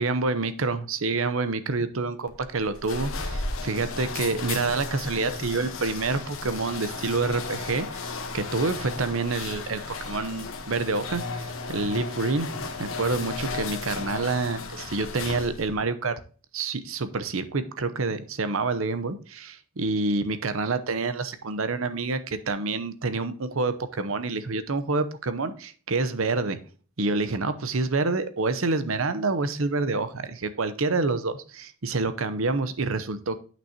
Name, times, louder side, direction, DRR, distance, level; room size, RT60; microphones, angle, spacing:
voice 1, 0.0-8.0 8.3-16.2 16.5-26.6 27.0-33.4, right 3 dB, 75° right, 12 dB, 0.8 m, -27 dB
sound 1, 2.3-15.8, left 3 dB, 80° left, 1.2 m, -35 dB
8.4 x 6.2 x 2.9 m, 0.40 s
head